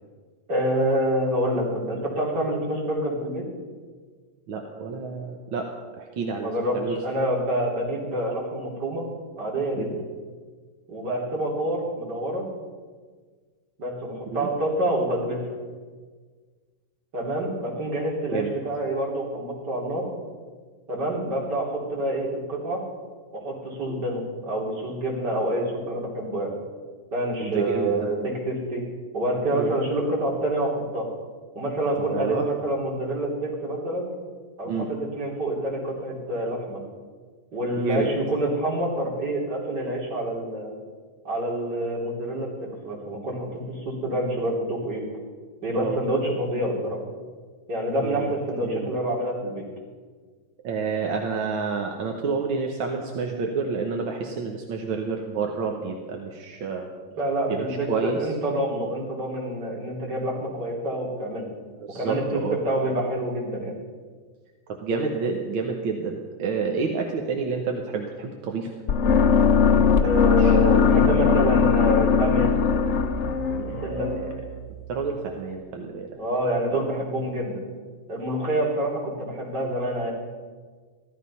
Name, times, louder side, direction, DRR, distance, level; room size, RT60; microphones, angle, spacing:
voice 1, 0.5-3.4 6.4-9.1 9.4-10.0 10.9-12.5 13.8-15.4 17.1-20.1 20.9-22.8 23.3-26.5 27.1-28.8 29.1-31.1 31.6-34.1 34.6-36.8 37.5-40.7 41.2-45.0 45.6-47.0 47.7-49.6 57.2-61.5 61.9-63.7 70.0-72.5 73.5-74.1 76.1-77.6 78.1-80.1, right 1 dB, 55° right, -3 dB, 3.9 m, -27 dB
voice 2, 4.5-5.7 6.0-7.0 9.8-10.0 14.3-14.5 18.3-18.5 23.9-24.0 27.4-28.1 29.5-29.7 32.0-32.4 34.7-34.9 37.8-38.1 45.7-46.0 48.0-48.3 48.6-48.9 50.6-56.9 57.5-58.2 61.8-62.6 64.8-68.7 70.4-70.8 71.0-71.4 73.5-74.3 74.9-76.2 76.7-76.8, right 5 dB, 85° right, 2 dB, 1.9 m, -29 dB
sound 1, 68.9-74.9, left 6 dB, 65° left, 0.6 m, -20 dB
15.0 x 12.5 x 5.5 m, 1.5 s
omnidirectional pair, 2.2 m